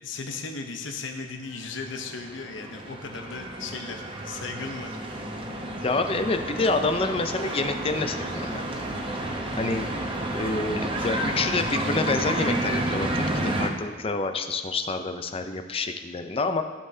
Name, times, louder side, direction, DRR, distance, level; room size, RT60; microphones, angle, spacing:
voice 1, 0.0-5.0, left 4 dB, 85° left, 4 dB, 0.9 m, -36 dB
sound 1, 1.6-13.7, right 1 dB, 30° right, 0.9 m, -30 dB
voice 2, 5.8-8.6 9.6-9.9 10.3-16.6, left 3 dB, 30° left, 7 dB, 0.5 m, -27 dB
15.0 x 5.5 x 2.8 m, 1.5 s
head